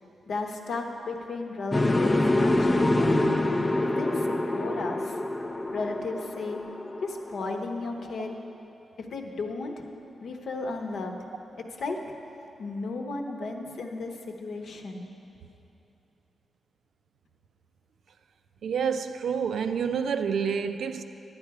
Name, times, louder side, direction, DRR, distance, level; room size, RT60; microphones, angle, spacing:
voice 1, 0.3-3.3 3.8-5.2 5.7-6.6 7.0-8.4 9.0-9.8 10.2-11.2 11.6-12.0 12.6-15.1, left 3 dB, 60° left, 3 dB, 0.9 m, -34 dB
sound 1, 1.7-7.7, left 1 dB, 15° left, 0.4 m, -26 dB
voice 2, 18.6-21.0, right 6 dB, 70° right, 9 dB, 0.4 m, -28 dB
11.5 x 9.7 x 4.8 m, 2.9 s
wide cardioid pair, 165°, 0 cm